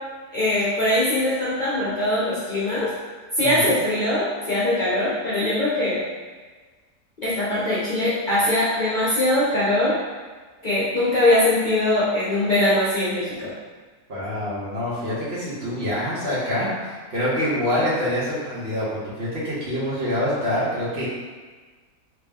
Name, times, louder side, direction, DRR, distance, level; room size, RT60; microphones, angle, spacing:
voice 1, 0.3-2.9 3.4-6.0 7.2-10.0 10.6-13.5, left 1 dB, 40° left, -10 dB, 0.8 m, -21 dB
voice 2, 14.1-21.1, left 1 dB, 45° right, -9 dB, 1.2 m, -26 dB
3.2 x 3.0 x 3.5 m, 1.4 s
omnidirectional pair, 1.6 m